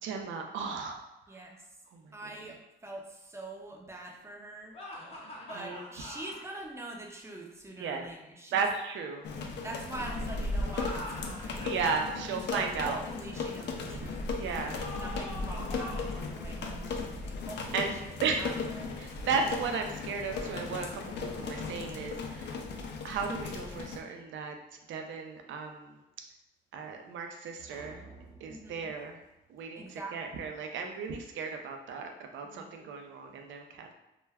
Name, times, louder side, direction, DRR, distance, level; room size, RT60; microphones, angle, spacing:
voice 1, 0.0-1.0 1.9-2.0 5.5-6.1 7.8-8.0 8.5-9.2 11.6-13.0 14.3-14.8 17.7-17.9 18.2-18.5 19.0-22.6 23.0-24.5 24.9-26.0 26.7-28.0 28.4-29.2 29.5-33.9, right 5 dB, 70° right, 4 dB, 0.5 m, -35 dB
voice 2, 1.3-1.6 2.1-4.8 5.5-8.7 9.6-11.8 12.3-14.3 15.0-18.0 18.4-19.0 28.5-28.9 29.7-30.2 32.4-32.9, right 2 dB, 15° right, 0 dB, 0.5 m, -44 dB
sound 1, 4.7-6.4 10.5-12.0 14.8-16.2, left 1 dB, 30° left, 0.7 m, -43 dB
sound 2, 9.2-24.0, left 3 dB, 60° left, 0.4 m, -37 dB
sound 3, 14.6-15.1 16.4-17.2 18.1-18.2 19.0-19.1 19.7-23.8 24.2-24.3 27.6-30.4, right 2 dB, 40° right, 1.0 m, -53 dB
2.2 x 2.1 x 3.3 m, 0.97 s
cardioid pair, 90°, 20 cm